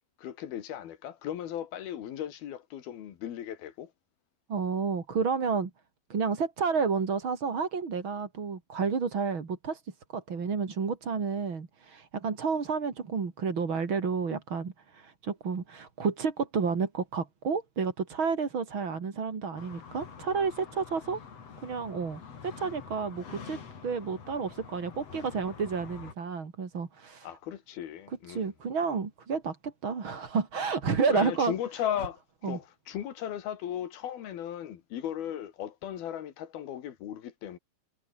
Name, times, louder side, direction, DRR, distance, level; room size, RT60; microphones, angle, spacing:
voice 1, 0.2-3.9 27.2-28.5 31.1-37.6, left 10 dB, 70° left, 3.7 m, -36 dB
voice 2, 4.5-5.7 6.1-21.2 21.6-27.3 28.1-31.5 32.4-32.6, right 5 dB, 35° right, 3.1 m, -31 dB
sound 1, 19.6-26.1, left 6 dB, 40° left, 3.7 m, -47 dB
omnidirectional pair, 4.6 m